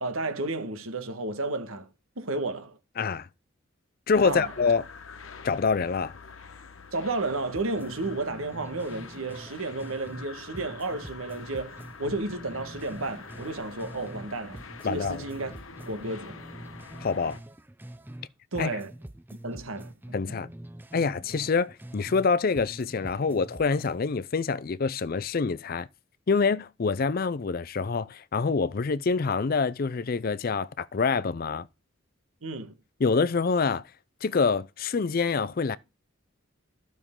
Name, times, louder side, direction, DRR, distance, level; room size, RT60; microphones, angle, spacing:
voice 1, 0.0-1.9 2.2-2.8 4.2-4.5 6.9-15.5 15.9-16.4 18.5-18.9 19.4-19.9 32.4-32.7, right 2 dB, 80° right, 1.5 m, -32 dB
voice 2, 3.0-3.3 4.1-4.8 5.4-6.1 14.8-15.2 17.0-17.4 18.6-18.7 20.1-20.5 20.9-25.9 26.3-31.7 33.0-33.8 34.2-35.8, left 4 dB, 45° left, 0.4 m, -26 dB
sound 1, 4.1-17.4, left 5 dB, 70° left, 1.1 m, -46 dB
sound 2, 7.5-10.3 10.5-14.3 14.5-18.3 18.5-22.3 22.5-24.0, right 1 dB, 10° right, 0.5 m, -45 dB
12.0 x 6.3 x 3.7 m
head